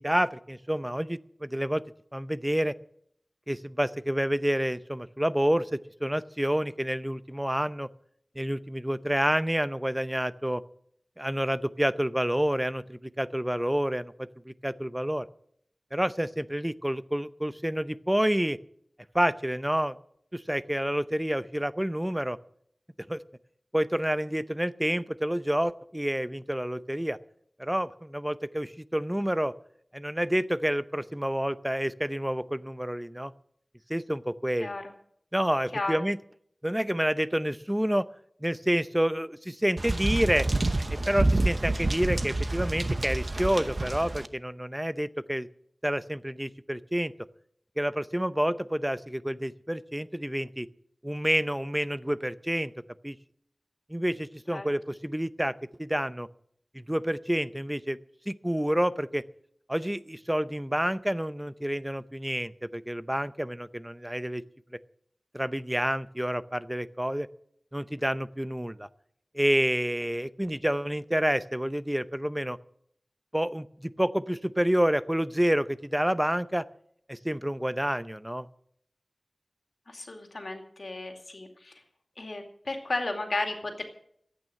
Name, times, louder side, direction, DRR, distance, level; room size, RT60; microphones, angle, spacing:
voice 1, 0.0-1.8 2.1-2.7 3.5-7.9 8.4-10.6 11.2-15.3 15.9-18.6 19.1-20.0 20.3-22.4 23.1-23.2 23.7-27.2 27.6-29.5 29.9-33.3 33.9-34.7 35.3-36.2 36.6-38.1 38.4-40.5 41.1-45.5 45.8-47.1 47.8-50.7 51.0-52.7 53.0-53.2 53.9-56.3 56.7-58.0 58.3-59.2 59.7-64.4 65.3-67.3 67.7-68.9 69.3-72.6 73.3-76.6 77.1-78.5, equal, 10° right, 14 dB, 0.6 m, -28 dB
voice 2, 34.6-34.9 35.7-36.0 54.5-54.7 79.9-81.7 82.2-83.8, left 2 dB, 85° left, 4 dB, 2.4 m, -34 dB
sound 1, 39.8-44.3, right 2 dB, 60° right, 0.9 m, -28 dB
14.0 x 9.0 x 7.7 m, 0.68 s
wide cardioid pair, 55°, 0 cm